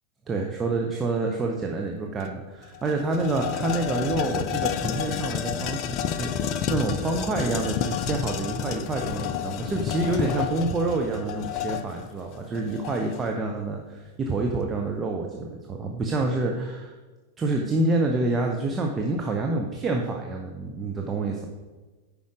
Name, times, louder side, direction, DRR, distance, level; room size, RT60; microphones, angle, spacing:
voice 1, 0.3-16.9 17.4-21.5, right 2 dB, 20° right, 1 dB, 0.9 m, -27 dB
sound 1, 2.2-2.3 2.6-13.3, left 9 dB, 40° left, 0.5 m, -30 dB
9.5 x 5.3 x 5.0 m, 1.3 s
figure-of-eight pair, 90°, 0 cm